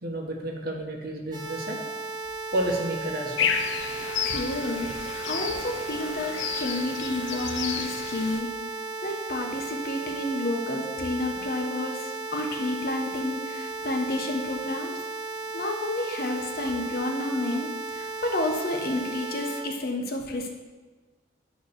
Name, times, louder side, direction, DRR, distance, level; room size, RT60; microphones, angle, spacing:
voice 1, 0.0-1.8 2.5-3.6, right 1 dB, 55° right, 1 dB, 1.2 m, -31 dB
sound 1, 1.3-19.6, right 3 dB, 25° right, 1.1 m, -35 dB
sound 2, 3.4-8.4, left 6 dB, 90° left, 0.6 m, -31 dB
voice 2, 4.0-8.5 9.0-15.0 15.5-20.5, left 1 dB, 55° left, 2 dB, 0.9 m, -30 dB
9.2 x 3.2 x 6.3 m, 1.3 s
head